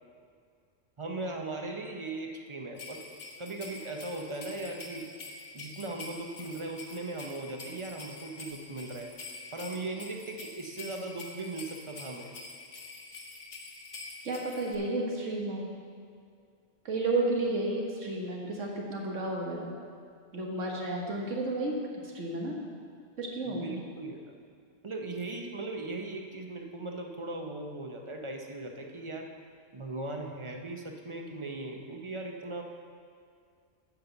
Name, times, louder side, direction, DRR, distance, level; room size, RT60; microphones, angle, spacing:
voice 1, 1.0-3.1 3.4-5.1 5.5-9.1 9.5-12.3 23.5-24.2 24.8-29.3 29.7-32.6, right 2 dB, 30° right, 2 dB, 0.6 m, -38 dB
sound 1, 2.8-14.8, left 3 dB, 55° left, 1.2 m, -46 dB
voice 2, 14.2-15.7 16.9-19.7 20.3-22.6 23.2-23.7, right 2 dB, 85° right, -1 dB, 1.7 m, -32 dB
9.5 x 5.2 x 7.0 m, 2.2 s
omnidirectional pair, 1.2 m